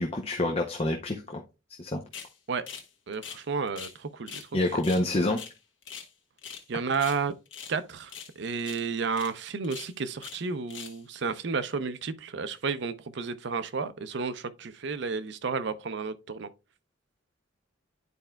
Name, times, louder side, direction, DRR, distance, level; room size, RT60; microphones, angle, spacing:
voice 1, 0.0-1.4 1.8-2.0 4.5-5.4, left 2 dB, 30° left, 0.7 m, -27 dB
sound 1, 2.1-2.3 2.7-2.9 3.1-4.0 4.3-4.5 4.8-6.1 6.4-6.7 6.9-7.8 8.1-8.3 8.6-8.8 9.1-9.3 9.6-10.4 10.7-11.0, left 7 dB, 70° left, 1.2 m, -42 dB
voice 2, 3.1-4.5 6.7-7.3 7.7-16.5, right 5 dB, 65° right, 0.6 m, -32 dB
11.0 x 4.4 x 2.2 m
head